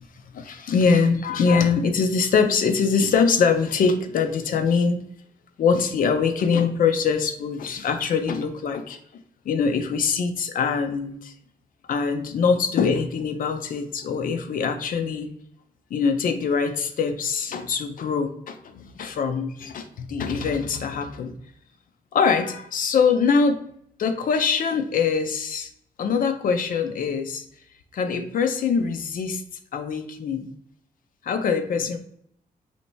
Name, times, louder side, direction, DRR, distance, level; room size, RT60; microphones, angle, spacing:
voice 1, 0.3-5.0 5.6-11.3 11.9-15.3 15.9-21.3 22.1-23.6 24.0-25.7 26.0-27.4 27.9-29.4 29.7-30.5 31.2-32.0, left 5 dB, 65° left, 7 dB, 0.5 m, -23 dB
3.1 x 2.8 x 4.4 m, 0.70 s
wide cardioid pair, 160°, 15 cm